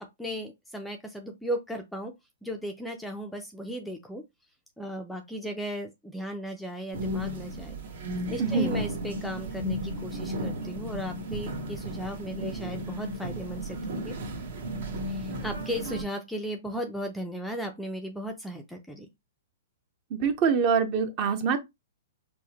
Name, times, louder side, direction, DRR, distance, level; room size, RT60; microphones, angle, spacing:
voice 1, 0.2-2.1 2.4-4.2 4.8-7.8 8.3-14.1 15.1-19.1, equal, ahead, 0.4 m, -36 dB
sound 1, 6.9-16.0, equal, 60° right, 1.1 m, -34 dB
voice 2, 8.4-8.7 20.1-21.6, right 6 dB, 30° right, 0.7 m, -25 dB
4.6 x 2.1 x 2.8 m
hypercardioid pair, 155°, 0 cm